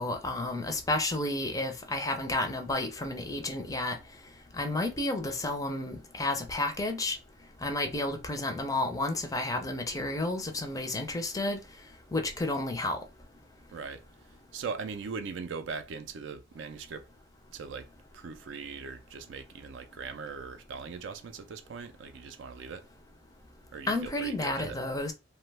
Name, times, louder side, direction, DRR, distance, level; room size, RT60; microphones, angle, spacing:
voice 1, 0.0-4.0 4.6-7.2 7.6-11.6 12.1-13.0 23.9-25.1, left 2 dB, 15° left, 0.4 m, -31 dB
voice 2, 13.7-14.0 14.5-17.1 17.5-17.9 18.1-22.8 23.7-24.8, right 5 dB, 65° right, 0.4 m, -40 dB
2.8 x 2.2 x 3.2 m
head